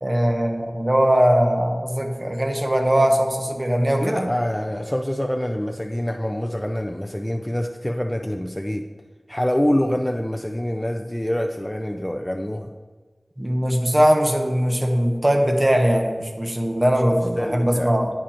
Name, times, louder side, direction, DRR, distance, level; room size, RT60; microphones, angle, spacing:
voice 1, 0.0-4.3 13.4-18.1, equal, 25° right, 3 dB, 0.9 m, -20 dB
voice 2, 4.0-8.9 9.3-12.7 17.4-17.9, equal, 15° left, 3 dB, 0.4 m, -25 dB
8.7 x 5.1 x 4.3 m, 1.4 s
wide cardioid pair, 50°, 0 cm